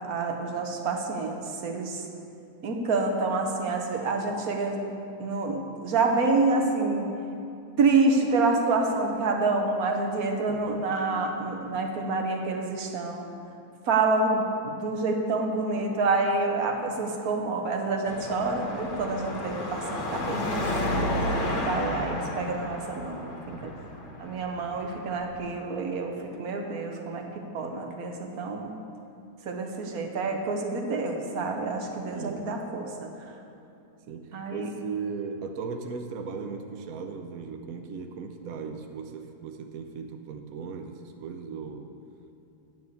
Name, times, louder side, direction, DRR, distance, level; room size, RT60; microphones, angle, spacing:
voice 1, 0.0-2.0 2.6-4.8 5.2-7.1 7.8-13.2 13.9-23.3 24.2-27.2 27.5-28.7 29.4-33.4 34.3-34.7, right 3 dB, 50° right, 3 dB, 1.2 m, -28 dB
voice 2, 10.5-10.9 23.5-23.7 32.1-32.5 34.1-41.9, right 5 dB, 90° right, 5 dB, 0.7 m, -37 dB
Car passing by / Traffic noise roadway noise / Engine, 18.1-25.4, left 1 dB, 45° left, 1.2 m, -32 dB
9.1 x 6.7 x 8.2 m, 2.6 s
omnidirectional pair, 2.4 m